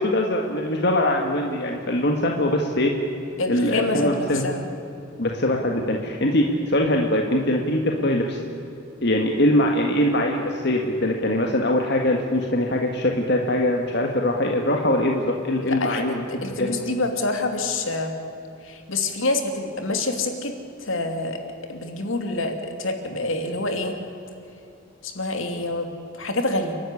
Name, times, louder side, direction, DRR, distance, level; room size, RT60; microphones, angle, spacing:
voice 1, 0.0-2.9 3.5-4.4 5.2-8.4 9.0-16.2 16.6-16.7, left 1 dB, 55° left, 2 dB, 1.8 m, -22 dB
voice 2, 3.4-4.7 15.6-18.1 18.6-20.5 20.8-21.4 21.7-24.0 25.0-25.9 26.2-26.7, left 2 dB, 75° left, 5 dB, 2.7 m, -26 dB
29.5 x 12.5 x 9.9 m, 2.9 s
head